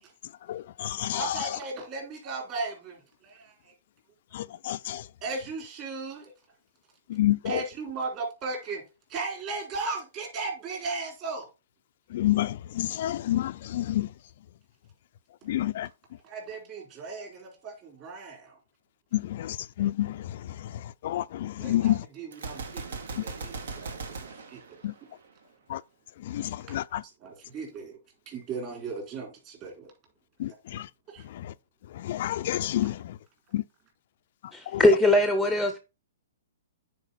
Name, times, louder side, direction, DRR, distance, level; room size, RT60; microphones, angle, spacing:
voice 1, 0.5-1.2 4.3-5.0 7.1-7.4 12.1-14.1 15.5-15.9 19.1-20.2 21.0-22.0 24.8-24.9 25.7-25.8 26.3-27.0 30.4-30.9 32.0-33.0 33.5-33.6 34.7-34.8, left 14 dB, 55° left, 0.3 m, -28 dB
voice 2, 1.1-3.7 5.2-6.3 7.4-8.8 9.1-11.5 16.2-18.6 21.6-24.6 26.7-26.8 27.2-28.0 28.3-29.9 31.1-31.2 32.8-32.9, right 3 dB, 30° right, 3.8 m, -36 dB
Gunshot gunfire, 22.3-25.4, right 4 dB, 75° right, 1.6 m, -39 dB
voice 3, 34.5-35.8, left 1 dB, ahead, 0.6 m, -21 dB
9.1 x 4.7 x 4.1 m
hypercardioid pair, 150°, 0 cm